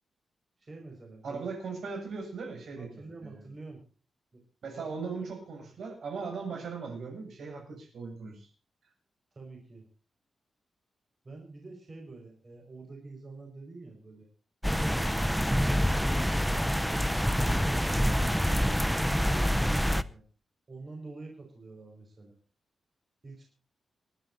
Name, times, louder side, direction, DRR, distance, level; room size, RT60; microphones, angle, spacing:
voice 1, 0.6-1.5 2.8-3.8 4.3-5.3 9.3-9.8 11.2-14.3 14.8-16.2 16.5-18.3 18.6-20.2 20.7-22.3 23.2-23.5, right 3 dB, 30° right, 1 dB, 5.2 m, -47 dB
voice 2, 1.2-3.4 4.6-8.5, right 4 dB, 65° right, 3 dB, 7.5 m, -38 dB
sound 1, 14.6-20.0, equal, ahead, 0.6 m, -26 dB
28.5 x 12.0 x 2.6 m, 0.36 s
wide cardioid pair, 175°, 0 cm